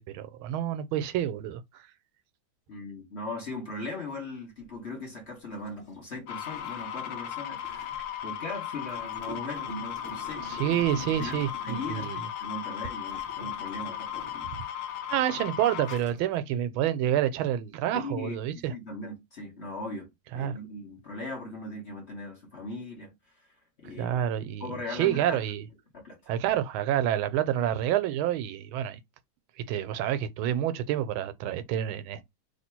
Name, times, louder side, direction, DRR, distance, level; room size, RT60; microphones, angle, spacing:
voice 1, 0.0-1.8 10.5-12.2 14.5-14.6 15.1-18.7 20.3-20.5 24.0-25.6 26.3-29.0 29.7-32.2, right 11 dB, 85° right, 1.4 m, -28 dB
voice 2, 2.7-10.7 11.1-14.5 17.9-24.2 24.6-25.4 25.9-26.3, left 2 dB, 40° left, 1.2 m, -39 dB
Gurgling, 4.6-4.7 5.5-8.2 8.9-12.5 13.1-14.6 15.2-15.3 15.7-16.4, right 1 dB, 20° left, 1.4 m, -47 dB
sound 1, 6.3-16.0, left 10 dB, 75° left, 1.2 m, -36 dB
3.3 x 2.8 x 4.3 m
omnidirectional pair, 2.2 m